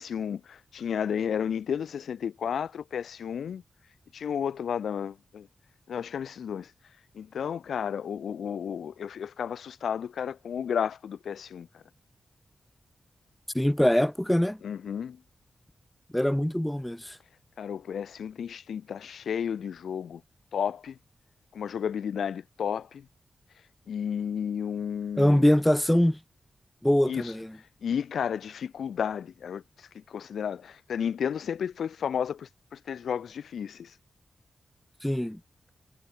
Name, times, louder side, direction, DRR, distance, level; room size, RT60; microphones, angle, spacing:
voice 1, 0.0-3.6 4.1-5.5 5.9-6.7 7.1-11.8 14.6-15.2 17.6-20.2 20.5-21.0 21.5-23.1 23.9-25.4 27.1-27.3 27.8-33.9, left 8 dB, 85° left, 5.6 m, -32 dB
voice 2, 13.5-14.6 16.1-17.2 25.2-26.2 26.8-27.6 35.0-35.4, left 1 dB, 10° left, 3.0 m, -23 dB
cardioid pair, 45°, 0 cm